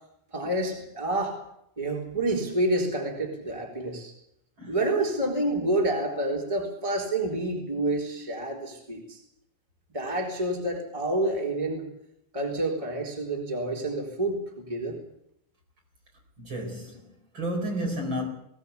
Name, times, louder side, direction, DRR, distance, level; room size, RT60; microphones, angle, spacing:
voice 1, 0.3-1.4 1.8-4.1 4.7-9.2 9.9-11.9 12.3-14.9, right 1 dB, 10° right, 3.8 m, -28 dB
voice 2, 16.4-18.3, equal, 40° right, 5.3 m, -32 dB
21.5 x 17.5 x 8.4 m
omnidirectional pair, 3.3 m